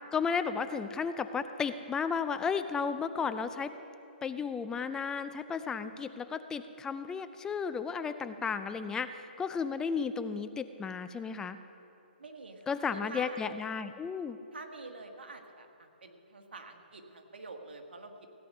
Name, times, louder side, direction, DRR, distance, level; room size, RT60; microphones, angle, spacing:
voice 1, 0.1-3.7 4.2-11.6 12.7-14.4, left 6 dB, 10° left, 11 dB, 0.4 m, -33 dB
voice 2, 12.2-13.4 14.5-18.4, right 3 dB, 85° right, 4 dB, 1.6 m, -47 dB
16.5 x 9.5 x 5.4 m, 2.8 s
hypercardioid pair, 140°, 6 cm